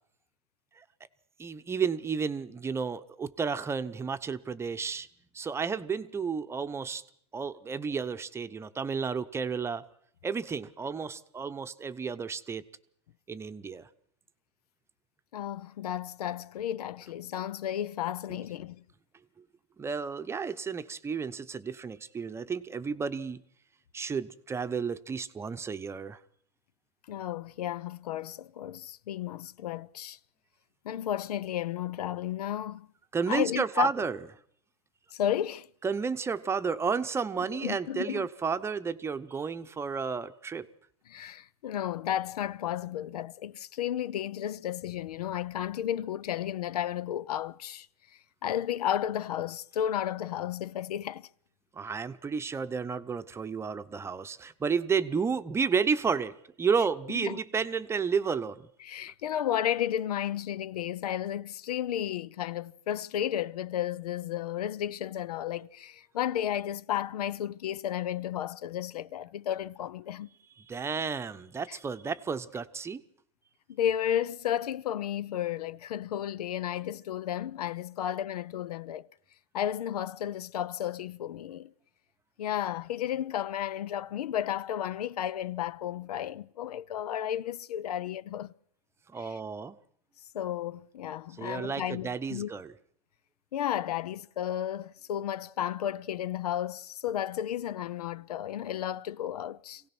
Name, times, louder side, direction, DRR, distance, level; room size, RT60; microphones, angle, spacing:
voice 1, 1.4-5.1 5.3-7.0 7.3-9.8 10.2-12.6 13.3-13.9 19.8-23.4 23.9-26.2 33.1-34.2 35.8-40.7 51.7-58.7 70.6-73.0 89.1-89.8 91.4-92.7, right 5 dB, 15° right, 0.9 m, -32 dB
voice 2, 15.3-18.8 27.1-30.2 30.8-32.9 33.3-33.9 35.1-35.7 37.5-38.3 41.1-47.9 48.4-51.3 57.2-57.4 58.8-70.3 71.7-71.8 73.7-79.1 79.5-81.7 82.4-88.5 89.2-89.4 90.3-92.5 93.5-99.8, left 11 dB, 80° left, 0.8 m, -33 dB
27.0 x 17.0 x 6.1 m
hypercardioid pair, 130°, 20 cm